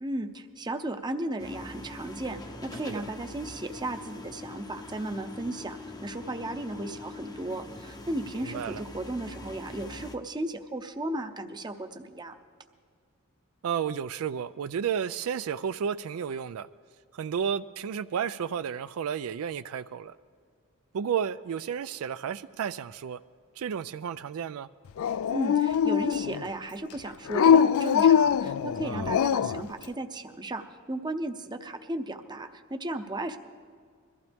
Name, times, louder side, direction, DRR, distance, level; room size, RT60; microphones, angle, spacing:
voice 1, 0.0-12.4 25.3-33.4, right 1 dB, 20° right, 7 dB, 0.7 m, -35 dB
sound 1, 1.4-10.2, left 2 dB, 15° left, 0.7 m, -43 dB
voice 2, 8.4-8.8 13.6-16.7 17.1-20.1 20.9-23.2 23.6-24.7 28.8-29.1, right 7 dB, 70° right, 13 dB, 0.4 m, -32 dB
Dog, 25.0-26.5 27.3-29.7, left 8 dB, 65° left, 0.3 m, -22 dB
22.5 x 15.0 x 3.5 m, 2.1 s
head